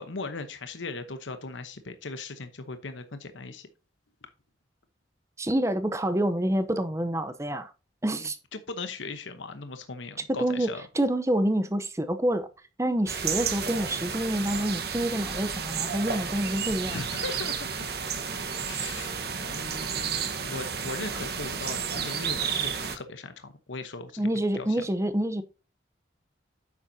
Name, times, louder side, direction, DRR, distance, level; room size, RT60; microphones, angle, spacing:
voice 1, 0.0-3.7 8.2-10.9 16.9-18.0 18.6-24.2 24.5-24.9, left 3 dB, 80° left, 1.0 m, -39 dB
voice 2, 5.4-7.7 8.0-8.4 10.3-12.5 12.8-17.0 24.2-25.4, right 1 dB, 15° right, 0.7 m, -27 dB
sound 1, 13.1-23.0, right 6 dB, 55° right, 1.2 m, -32 dB
9.6 x 7.3 x 2.7 m
head